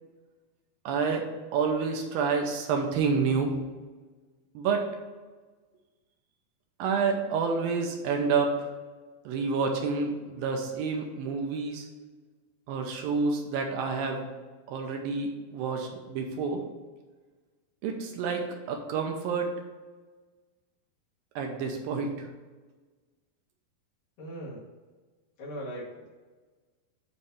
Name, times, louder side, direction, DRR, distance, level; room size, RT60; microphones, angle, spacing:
voice 1, 0.9-3.6 4.5-4.9 6.8-8.7 9.3-11.9 12.7-14.3 14.7-16.6 17.8-19.5 21.4-22.3, right 5 dB, 75° right, 2 dB, 2.5 m, -29 dB
voice 2, 24.2-24.7 25.4-26.1, equal, 65° left, -5 dB, 3.5 m, -39 dB
9.1 x 3.3 x 5.4 m, 1.3 s
omnidirectional pair, 4.4 m